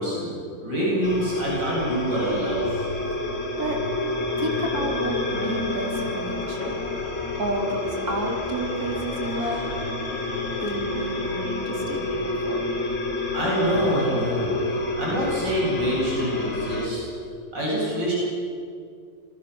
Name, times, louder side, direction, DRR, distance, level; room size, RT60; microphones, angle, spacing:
voice 1, 0.0-2.8 13.3-14.5 15.0-17.0 17.5-18.1, right 1 dB, 65° right, -6 dB, 8.8 m, -25 dB
sound 1, 1.0-16.9, left 2 dB, 65° left, 3.4 m, -29 dB
voice 2, 4.4-6.8 7.4-9.6 10.6-12.8, right 1 dB, 50° right, 0 dB, 4.2 m, -31 dB
28.5 x 22.0 x 6.4 m, 2.3 s
omnidirectional pair, 2.1 m